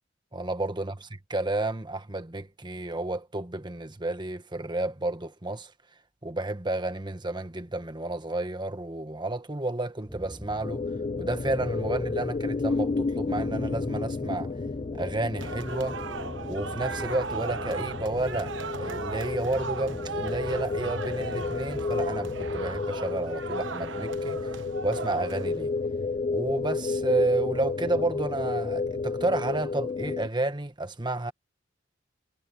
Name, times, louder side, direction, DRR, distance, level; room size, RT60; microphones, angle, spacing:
voice 1, 0.3-1.0 1.3-5.7 6.2-10.8 11.2-14.5 14.9-16.0 16.5-24.5 24.8-25.7 26.3-31.3, right 2 dB, 25° right, 1.5 m, -31 dB
sound 1, 10.1-22.8, equal, ahead, 6.6 m, -44 dB
sound 2, 10.6-30.3, left 4 dB, 35° left, 0.3 m, -32 dB
sound 3, 15.4-25.9, right 5 dB, 75° right, 1.0 m, -37 dB
head